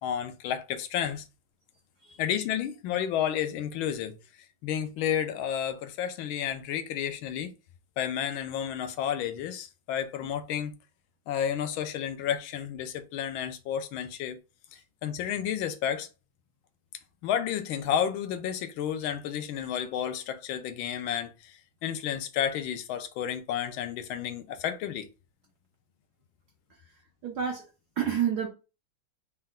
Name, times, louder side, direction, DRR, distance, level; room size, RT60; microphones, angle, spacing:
voice 1, 0.0-1.2 2.2-4.2 4.6-7.5 8.0-10.7 11.3-14.4 15.0-16.1 17.2-25.1, left 9 dB, 75° left, 1.4 m, -31 dB
voice 2, 26.7-27.7 28.0-28.5, right 8 dB, 65° right, 1.0 m, -30 dB
4.2 x 2.2 x 3.6 m
omnidirectional pair, 2.3 m